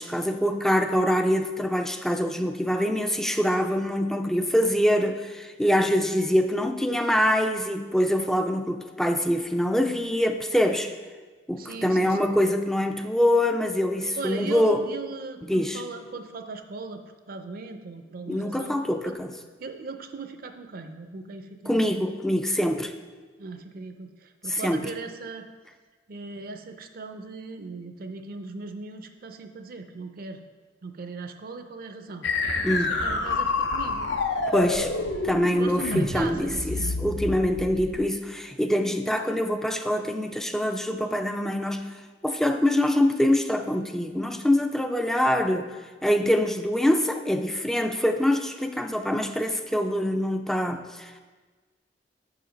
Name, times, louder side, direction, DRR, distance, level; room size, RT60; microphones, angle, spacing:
voice 1, 0.0-10.9 11.5-14.8 15.5-15.8 18.3-19.3 21.7-22.9 24.5-24.8 32.6-32.9 34.5-34.9 35.2-41.9 42.2-45.7 46.0-51.2, equal, ahead, 7 dB, 0.3 m, -24 dB
voice 2, 11.5-12.3 14.2-19.2 19.6-21.9 23.4-25.4 26.1-30.4 30.8-32.3 32.7-34.1 35.3-37.1 37.8-38.0, right 3 dB, 55° right, 7 dB, 0.5 m, -38 dB
sound 1, 32.2-38.0, left 3 dB, 80° left, 0.7 m, -28 dB
6.5 x 4.9 x 5.1 m, 1.4 s
head